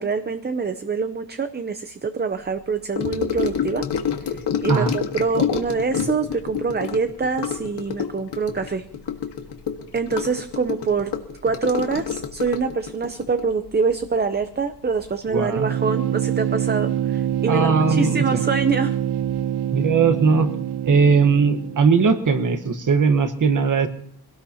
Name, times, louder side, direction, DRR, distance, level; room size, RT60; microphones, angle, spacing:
voice 1, 0.0-3.9 4.3-8.9 9.9-11.1 11.4-19.0, right 5 dB, 25° right, 9 dB, 0.6 m, -25 dB
Gurgling / Sink (filling or washing) / Trickle dribble, 3.0-14.6 14.9-15.2 15.5-15.6, left 7 dB, 90° left, 1.7 m, -28 dB
voice 2, 15.3-15.7 17.5-18.4 19.7-20.5 20.9-23.9, right 5 dB, 50° right, 9 dB, 1.3 m, -19 dB
sound 1, 15.6-22.2, right 10 dB, 70° right, 0.5 m, -25 dB
24.5 x 18.0 x 2.9 m, 0.66 s
wide cardioid pair, 180°, 40 cm